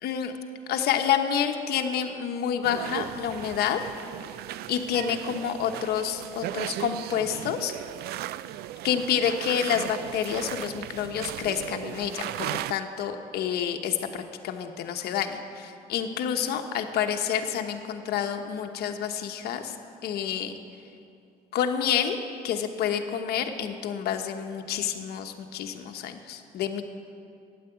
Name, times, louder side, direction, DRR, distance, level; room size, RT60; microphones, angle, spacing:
voice 1, 0.0-0.3 0.7-3.8 4.7-7.7 8.8-19.7 20.0-20.5 21.5-22.2 22.4-26.8, left 8 dB, 70° left, 6 dB, 1.1 m, -28 dB
sound 1, 2.6-12.7, right 13 dB, 70° right, 0.4 m, -36 dB
12.5 x 9.7 x 8.1 m, 2.5 s
cardioid pair, 110°, 17 cm